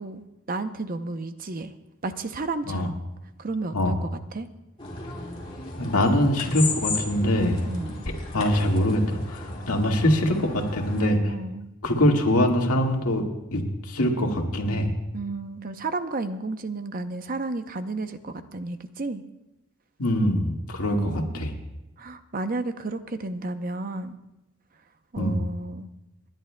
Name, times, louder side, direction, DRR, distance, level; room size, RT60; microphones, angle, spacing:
voice 1, 0.0-1.7 2.0-3.0 3.4-4.5 7.7-8.1 11.3-11.7 15.1-19.2 20.9-21.5 22.0-24.2 25.1-25.9, right 3 dB, 40° right, 9 dB, 0.6 m, -32 dB
sound 1, 4.8-11.1, left 3 dB, 25° left, 2.2 m, -35 dB
voice 2, 5.8-7.6 8.3-11.3 11.8-13.2 13.5-14.9 20.0-21.5 25.2-25.4, left 1 dB, 90° left, 1 dB, 1.8 m, -23 dB
29.5 x 10.5 x 2.2 m, 0.96 s
head